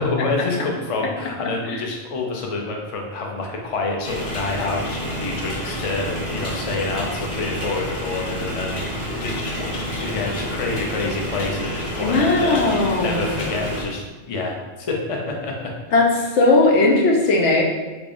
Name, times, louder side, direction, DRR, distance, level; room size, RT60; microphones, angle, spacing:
voice 1, 0.0-15.7, left 3 dB, 45° left, 0 dB, 0.4 m, -27 dB
sound 1, 4.0-13.9, equal, 65° left, 1.3 m, -29 dB
voice 2, 12.0-13.4 15.9-17.6, left 2 dB, 90° left, 0 dB, 1.0 m, -18 dB
3.5 x 3.4 x 2.5 m, 1.3 s
omnidirectional pair, 1.2 m